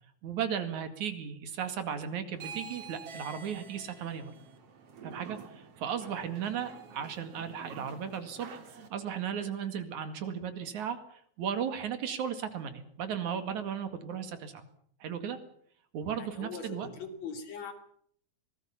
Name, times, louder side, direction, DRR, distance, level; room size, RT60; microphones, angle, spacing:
voice 1, 0.2-4.3 5.0-14.7 15.0-15.4 15.9-16.9, right 8 dB, 80° right, 9 dB, 3.5 m, -36 dB
sound 1, 2.3-8.9, right 6 dB, 55° right, 3.1 m, -48 dB
voice 2, 16.1-17.7, left 5 dB, 65° left, 6 dB, 4.1 m, -41 dB
25.0 x 19.0 x 7.1 m, 0.64 s
omnidirectional pair, 3.3 m